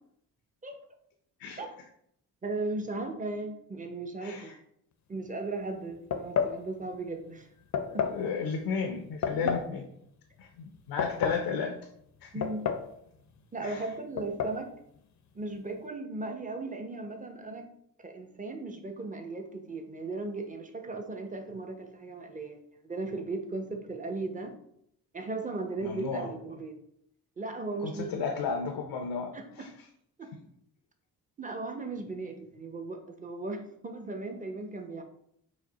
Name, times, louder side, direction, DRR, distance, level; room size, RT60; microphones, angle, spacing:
voice 1, 2.4-4.5 5.1-7.5 7.9-8.1 9.4-9.5 12.3-12.7 13.5-14.7 15.3-17.7 18.0-24.5 25.1-26.8 27.4-28.3 29.3-29.7 30.2-30.3 31.4-35.0, right 3 dB, 20° right, 4 dB, 0.7 m, -37 dB
voice 2, 4.2-4.6 7.9-9.8 10.4-11.7 12.2-12.3 13.6-13.9 25.8-26.3 27.8-29.7, left 5 dB, 90° left, 3 dB, 0.6 m, -34 dB
sound 1, 6.1-6.6 7.7-8.2 9.2-9.7 10.7-11.5 12.4-12.9 13.2-13.3 14.2-14.6, left 7 dB, 50° left, 0.5 m, -30 dB
4.9 x 2.1 x 4.0 m, 0.73 s
cardioid pair, 80°, 38 cm